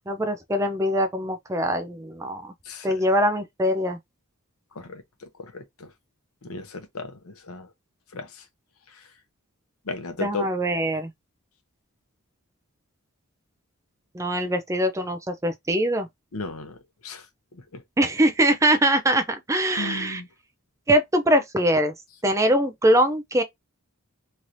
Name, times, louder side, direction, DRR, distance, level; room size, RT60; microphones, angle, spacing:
voice 1, 0.1-2.5 2.8-4.0 10.2-11.1 14.1-16.1 18.0-20.2 20.9-21.9 22.2-23.4, right 1 dB, 15° right, 0.4 m, -22 dB
voice 2, 2.6-3.0 4.7-5.0 5.4-5.9 6.4-7.7 8.1-8.4 8.9-9.1 9.9-10.5 16.3-16.8 17.0-17.3 17.5-17.8 19.8-20.3, left 3 dB, 75° left, 0.8 m, -35 dB
3.2 x 2.8 x 2.6 m
head